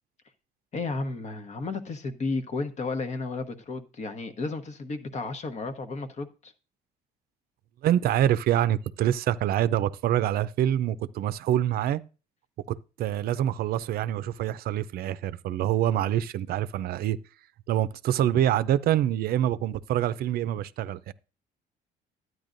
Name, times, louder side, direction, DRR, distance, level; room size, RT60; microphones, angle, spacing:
voice 1, 0.7-6.5, left 3 dB, 45° left, 1.1 m, -33 dB
voice 2, 7.8-12.0 12.7-17.2 17.7-21.1, right 11 dB, 65° right, 0.5 m, -26 dB
12.0 x 9.4 x 2.6 m
cardioid pair, 110°, 17 cm